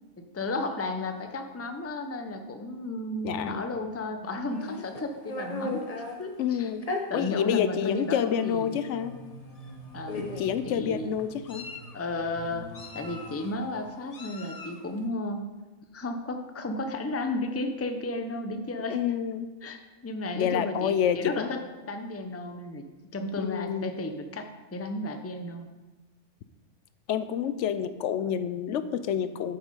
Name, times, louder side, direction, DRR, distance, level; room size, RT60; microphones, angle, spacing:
voice 1, 0.2-5.8 6.2-6.7 7.1-8.8 9.9-10.3 10.6-11.1 11.9-12.7 12.9-15.5 15.9-19.0 19.6-22.9 23.1-25.7, left 2 dB, 15° left, 6 dB, 0.5 m, -33 dB
voice 2, 3.2-3.7 6.4-6.8 7.1-9.2 10.2-11.7 18.9-19.5 20.4-21.5 23.4-24.0 27.1-29.6, left 9 dB, 90° left, 12 dB, 0.9 m, -28 dB
Meow, 4.5-6.2 6.8-7.0 7.9-8.0 8.4-8.6 9.6-9.7 10.1-10.6 11.2-11.9 12.7-13.5 14.1-14.8, left 2 dB, 35° left, 0.9 m, -37 dB
sound 1, 8.5-13.8, right 1 dB, 5° right, 2.2 m, -46 dB
8.5 x 6.9 x 5.3 m, 1.2 s
omnidirectional pair, 1.2 m